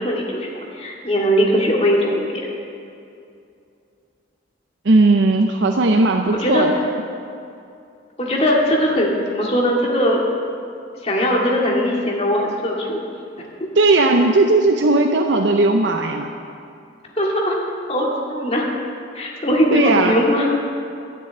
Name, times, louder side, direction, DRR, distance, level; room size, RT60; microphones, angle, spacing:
voice 1, 0.0-2.3 6.4-6.7 8.2-10.2 11.0-13.0 17.2-17.6 17.9-18.7 19.1-20.5, equal, 35° left, -2 dB, 2.1 m, -20 dB
voice 2, 4.8-6.7 13.8-16.3 19.7-20.2, right 2 dB, 80° right, 4 dB, 0.7 m, -16 dB
12.5 x 6.9 x 8.7 m, 2.5 s
head